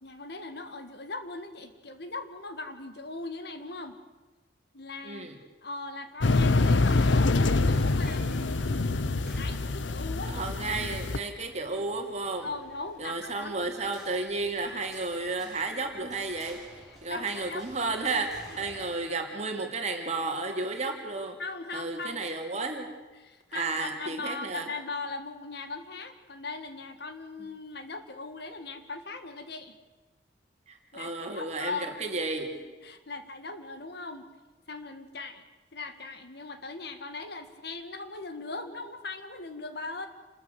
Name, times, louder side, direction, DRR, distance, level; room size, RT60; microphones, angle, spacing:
voice 1, 0.0-4.0 4.7-5.3 5.6-10.4 12.4-13.6 16.8-17.7 18.5-18.7 21.4-22.2 23.2-29.7 30.9-32.0 32.6-34.3 34.7-35.4 35.7-40.1, left 3 dB, 60° left, 9 dB, 1.8 m, -39 dB
voice 2, 5.0-5.4 10.3-12.5 13.0-16.6 17.0-21.4 21.7-22.9 23.5-24.7 30.7-32.5, right 3 dB, 35° right, 3 dB, 2.8 m, -32 dB
sound 1, 6.2-11.2, left 3 dB, 80° left, 0.8 m, -25 dB
sound 2, 6.5-19.1, equal, ahead, 6.0 m, -51 dB
28.0 x 13.5 x 8.0 m, 1.3 s
head